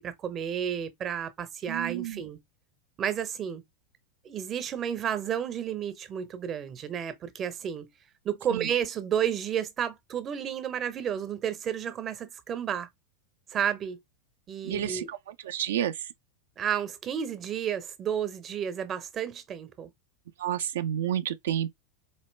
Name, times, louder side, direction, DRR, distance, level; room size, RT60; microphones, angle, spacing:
voice 1, 0.0-2.4 3.0-3.6 4.2-7.9 8.2-12.9 13.5-14.0 14.5-15.1 16.6-19.9, right 9 dB, 30° right, 0.8 m, -31 dB
voice 2, 1.7-2.1 14.6-15.0 15.4-15.9 20.4-21.7, right 10 dB, 60° right, 0.5 m, -29 dB
4.3 x 2.9 x 3.2 m
figure-of-eight pair, 85°, 0 cm